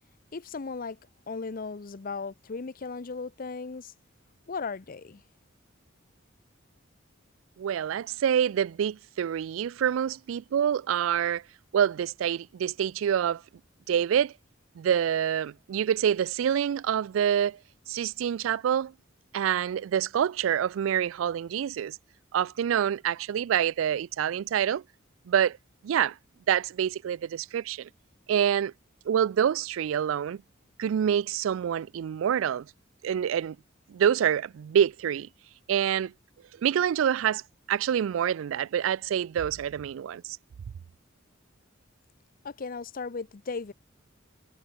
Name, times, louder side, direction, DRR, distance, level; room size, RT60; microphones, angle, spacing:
voice 1, 0.3-1.0 1.3-3.9 4.5-5.2 42.4-43.7, left 4 dB, 45° left, 0.6 m, -36 dB
voice 2, 7.6-11.4 11.7-13.4 13.9-14.3 14.8-17.6 17.9-18.9 19.3-22.0 22.3-24.8 25.3-25.6 25.8-26.2 26.5-27.9 28.3-28.7 29.1-30.4 30.8-32.7 33.0-33.6 33.9-35.3 35.7-36.1 36.6-37.4 37.7-40.4, right 9 dB, 75° right, 0.3 m, -26 dB
head